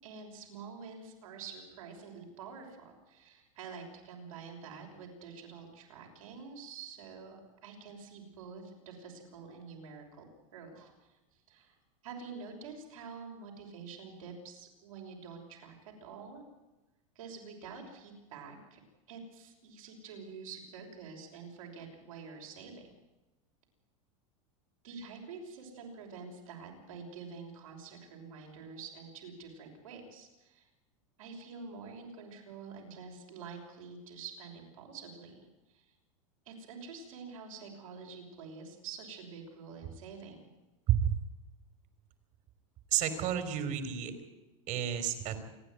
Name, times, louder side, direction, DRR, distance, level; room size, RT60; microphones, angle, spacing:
voice 1, 0.0-10.9 11.5-11.8 12.0-16.4 17.1-18.8 19.1-22.9 24.8-30.7 31.2-35.9 36.5-40.5, right 5 dB, 80° right, 1 dB, 6.2 m, -47 dB
voice 2, 40.9-41.2 42.9-44.1 44.7-45.4, right 10 dB, 50° right, 9 dB, 3.6 m, -30 dB
28.0 x 10.5 x 9.6 m, 1.1 s
hypercardioid pair, 100°, 17 cm